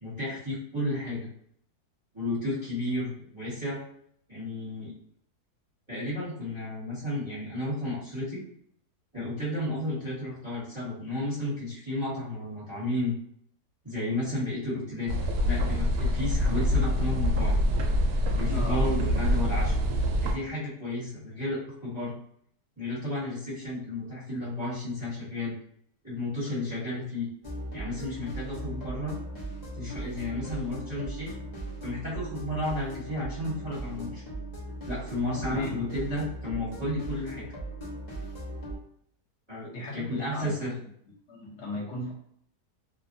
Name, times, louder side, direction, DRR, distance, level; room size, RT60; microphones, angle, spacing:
voice 1, 0.0-1.3 2.1-3.8 4.3-4.9 5.9-8.4 9.1-13.1 13.8-15.1 15.4-17.6 18.4-19.7 20.2-22.1 22.8-25.5 26.0-27.3 27.7-29.2 29.8-31.3 31.8-34.2 34.9-37.5 39.5-40.7, left 1 dB, 20° right, -11 dB, 1.3 m, -32 dB
sound 1, 15.1-20.3, equal, 75° right, 1.1 m, -25 dB
voice 2, 18.5-18.9 35.5-35.8 39.7-40.7 41.1-42.1, left 1 dB, 50° left, -3 dB, 1.1 m, -37 dB
sound 2, 27.4-38.8, right 1 dB, 30° left, 1.0 m, -38 dB
3.0 x 2.4 x 2.6 m, 0.66 s
omnidirectional pair, 1.7 m